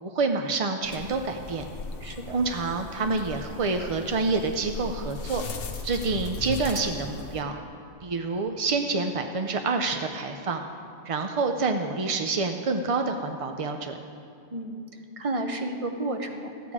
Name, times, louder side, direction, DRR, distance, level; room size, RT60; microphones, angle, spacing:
voice 1, 0.0-1.7 2.3-5.4 5.8-7.5 8.0-10.6 11.0-14.0, right 3 dB, 50° right, 5 dB, 0.4 m, -27 dB
sound 1, 0.8-7.4, left 3 dB, 80° left, 1.1 m, -38 dB
voice 2, 2.0-2.4 14.5-14.8 15.2-16.7, right 2 dB, 35° right, 4 dB, 0.8 m, -32 dB
14.0 x 9.2 x 4.9 m, 2.5 s
omnidirectional pair, 1.2 m